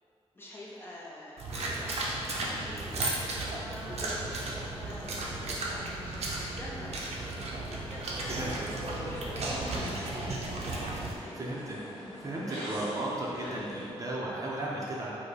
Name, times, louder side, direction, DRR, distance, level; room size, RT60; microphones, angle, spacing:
voice 1, 0.3-6.9 7.3-10.2 10.8-11.4, left 1 dB, 20° left, -6 dB, 0.7 m, -47 dB
sound 1, 1.4-11.1, right 2 dB, 75° right, 0.6 m, -35 dB
sound 2, 1.5-13.9, equal, ahead, 1.4 m, -43 dB
voice 2, 8.3-8.7 9.5-9.8 11.4-11.8 12.2-15.3, right 1 dB, 30° right, -5 dB, 0.6 m, -35 dB
5.1 x 2.1 x 4.1 m, 2.6 s
wide cardioid pair, 155°, 11 cm